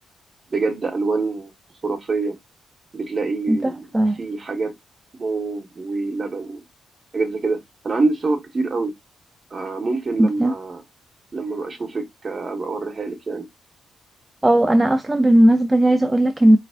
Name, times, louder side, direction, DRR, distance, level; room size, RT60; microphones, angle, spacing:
voice 1, 0.5-1.5 1.8-2.4 2.9-3.9 4.2-4.7 5.2-6.6 7.1-8.9 9.5-10.8 11.3-13.5, right 3 dB, 30° right, 1.3 m, -25 dB
voice 2, 3.5-4.2 10.2-10.5 14.4-16.6, right 1 dB, 15° right, 0.4 m, -16 dB
5.1 x 3.3 x 2.4 m
cardioid pair, 140°, 0 cm